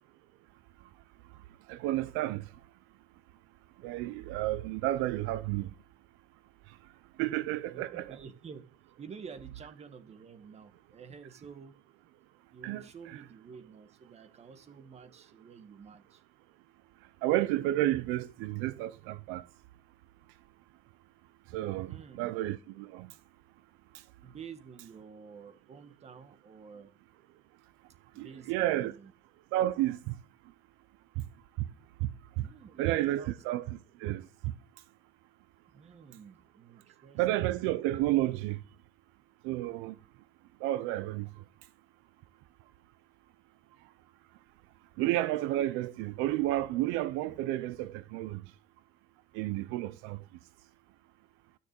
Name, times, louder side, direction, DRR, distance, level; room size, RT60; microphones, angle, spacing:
voice 1, 1.7-2.4 3.8-5.7 7.2-8.0 12.6-12.8 17.2-19.4 21.5-23.1 28.2-28.9 29.5-30.1 32.8-33.6 34.0-34.2 37.2-38.6 39.4-39.9 40.6-41.3 45.0-48.4 49.3-50.2, right 15 dB, 85° right, 0.7 m, -31 dB
voice 2, 7.7-8.6 9.0-11.7 12.5-16.2 21.9-22.3 24.2-26.9 28.1-29.1 32.4-33.4 35.7-37.6, right 6 dB, 30° right, 1.8 m, -50 dB
13.0 x 6.6 x 9.0 m
cardioid pair, 130°, 20 cm